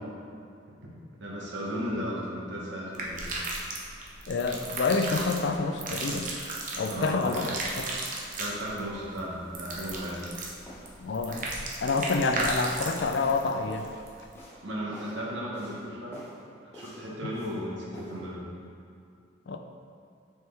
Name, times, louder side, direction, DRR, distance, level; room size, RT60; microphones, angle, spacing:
voice 1, 1.2-3.3 6.8-7.4 8.4-10.2 14.6-16.2 16.7-18.4, equal, 70° right, -5 dB, 1.3 m, -35 dB
sound 1, 2.9-14.3, right 2 dB, 40° right, 0.7 m, -35 dB
voice 2, 4.3-6.3 6.8-7.5 7.8-7.9 11.0-11.5 11.8-13.9 19.5-19.6, left 4 dB, 60° left, 6 dB, 0.4 m, -28 dB
sound 2, 10.0-10.3 10.7-11.0 11.3-11.6 11.9-12.2 12.5-14.0 14.3-14.6 14.9-15.2 15.5-15.8 16.1-16.4 16.7-17.6 17.9-18.2, left 1 dB, 10° left, 1.0 m, -49 dB
6.3 x 4.6 x 3.4 m, 2.4 s
head